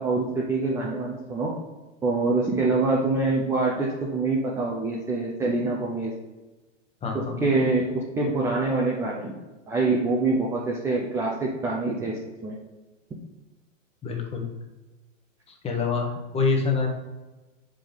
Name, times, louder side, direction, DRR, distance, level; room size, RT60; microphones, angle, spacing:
voice 1, 0.0-1.5 2.0-6.1 7.1-9.3 9.7-12.6, right 3 dB, 5° right, -2 dB, 0.5 m, -25 dB
voice 2, 7.0-7.4 14.0-14.5 15.5-16.9, left 4 dB, 15° left, 2 dB, 1.1 m, -26 dB
6.8 x 5.0 x 3.9 m, 1.1 s
hypercardioid pair, 130°, 39 cm